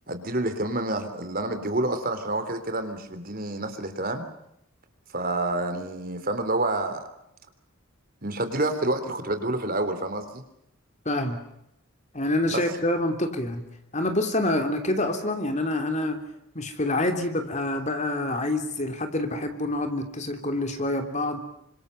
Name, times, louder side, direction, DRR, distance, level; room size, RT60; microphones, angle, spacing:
voice 1, 0.1-4.2 5.1-7.0 8.2-10.4 12.5-12.6, right 2 dB, 45° right, 9 dB, 3.5 m, -28 dB
voice 2, 11.0-11.4 12.1-13.6 13.9-16.2 16.5-21.4, left 1 dB, 35° left, 6 dB, 3.3 m, -27 dB
28.5 x 26.0 x 6.8 m, 0.77 s
head